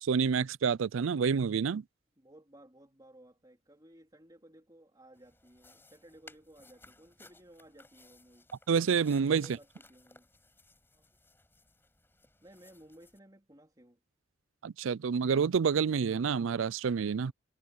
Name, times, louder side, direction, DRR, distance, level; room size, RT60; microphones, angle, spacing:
voice 1, 0.0-1.8 8.7-9.5 14.6-17.3, right 6 dB, 90° right, 0.4 m, -28 dB
voice 2, 2.1-8.5 9.4-10.3 10.9-11.1 12.4-14.0, right 1 dB, 20° right, 3.4 m, -57 dB
sound 1, 5.1-13.2, left 2 dB, 10° left, 7.9 m, -60 dB
head